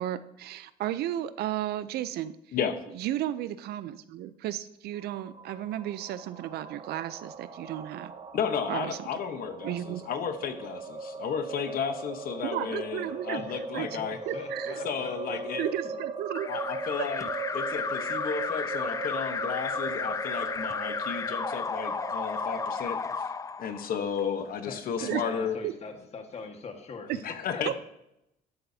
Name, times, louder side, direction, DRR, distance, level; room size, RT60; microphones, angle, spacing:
voice 1, 0.0-2.3 2.9-8.1 8.7-9.0 9.6-10.0 12.4-13.9 14.3-14.8 15.6-16.5 25.0-25.2 25.6-25.7 27.1-27.2 27.7-27.8, right 12 dB, 70° right, 14 dB, 0.5 m, -33 dB
sound 1, 5.0-22.8, right 3 dB, 35° right, 1.3 m, -39 dB
voice 2, 8.3-14.2 14.8-15.7 16.5-17.3 17.5-23.3 23.6-25.5 27.2-27.7, left 7 dB, 60° left, 8 dB, 1.0 m, -33 dB
voice 3, 13.8-15.4 24.6-27.1 27.5-27.7, left 4 dB, 40° left, 4 dB, 1.6 m, -42 dB
Alarm, 16.3-24.2, left 5 dB, 20° left, 0.4 m, -33 dB
12.0 x 10.5 x 2.8 m, 0.84 s
cardioid pair, 110°, 17 cm